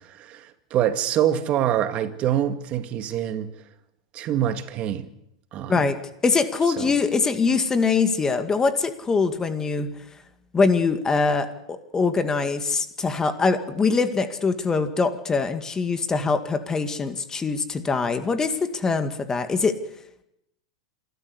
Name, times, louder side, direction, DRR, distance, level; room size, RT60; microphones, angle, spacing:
voice 1, 0.0-3.5 4.1-5.1 5.5-5.9 6.8-6.9, right 10 dB, 40° right, 1.9 m, -25 dB
voice 2, 6.2-9.9 10.5-19.8, left 4 dB, 20° left, 2.0 m, -23 dB
27.0 x 13.0 x 8.2 m
hypercardioid pair, 105°, 3 cm